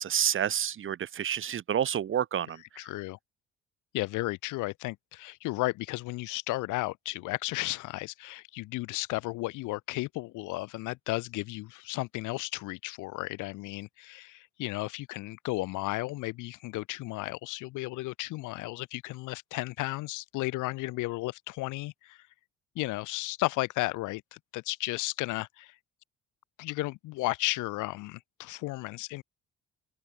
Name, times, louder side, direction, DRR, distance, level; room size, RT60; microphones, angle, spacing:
voice 1, 0.0-2.8, right 9 dB, 45° right, 0.6 m, -29 dB
voice 2, 2.8-3.2 3.9-22.3 22.8-25.8 26.6-29.2, left 20 dB, 85° left, 0.5 m, -34 dB
open air
cardioid pair, 90°, 30 cm